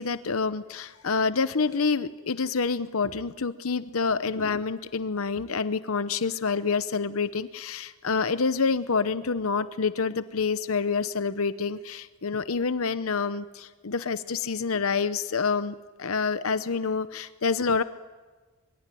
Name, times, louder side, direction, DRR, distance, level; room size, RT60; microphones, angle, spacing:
voice 1, 0.0-17.8, left 5 dB, 70° left, 13 dB, 0.8 m, -27 dB
23.5 x 23.5 x 9.2 m, 1.3 s
head